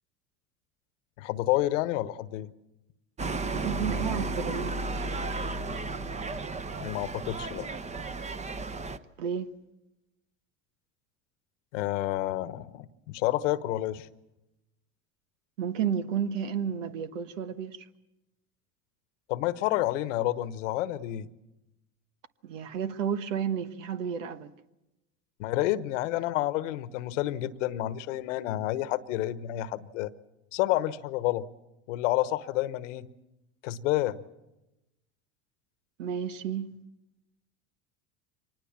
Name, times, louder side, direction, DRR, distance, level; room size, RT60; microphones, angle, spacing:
voice 1, 1.2-2.5 6.8-7.7 11.7-14.1 19.3-21.3 25.4-30.1 30.5-31.5 31.9-33.1 33.6-34.2, left 15 dB, 80° left, 1.2 m, -29 dB
sound 1, 3.2-9.0, right 3 dB, 20° right, 0.9 m, -33 dB
voice 2, 3.4-4.9 9.2-9.5 15.6-17.8 22.4-24.5 36.0-36.8, right 7 dB, 90° right, 1.3 m, -32 dB
24.5 x 19.5 x 7.3 m
supercardioid pair, 100°, 37 cm